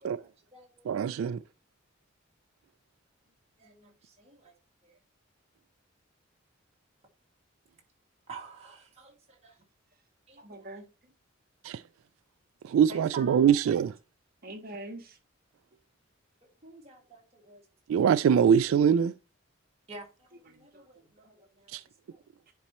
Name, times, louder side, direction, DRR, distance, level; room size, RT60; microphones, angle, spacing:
voice 1, 0.0-0.9 3.6-4.5 4.8-5.0 8.3-9.6 10.3-10.4 12.9-13.6 16.4-17.7 19.9-22.2, right 4 dB, 30° right, 2.1 m, -49 dB
voice 2, 0.9-1.4 11.6-11.8 12.6-13.9 17.9-19.1 21.7-21.8, right 8 dB, 90° right, 0.3 m, -23 dB
voice 3, 10.4-11.1 14.4-15.2 20.4-21.3 22.4-22.5, right 1 dB, 50° right, 1.5 m, -45 dB
10.0 x 4.2 x 3.0 m
head